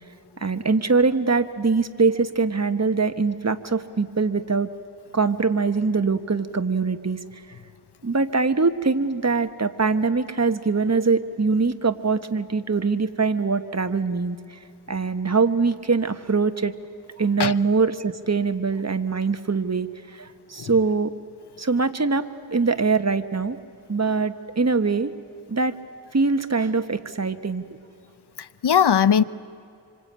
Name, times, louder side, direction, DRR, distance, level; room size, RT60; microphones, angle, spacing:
voice 1, 0.4-4.7 5.1-7.2 8.0-14.6 14.9-16.7 17.2-21.1 21.6-23.6 23.9-25.1 25.5-25.7 26.1-27.6, right 4 dB, 40° right, 9 dB, 1.3 m, -23 dB
voice 2, 28.4-29.2, left 8 dB, 75° left, 16 dB, 0.8 m, -19 dB
26.0 x 25.5 x 8.8 m, 2.5 s
wide cardioid pair, 50°, 41 cm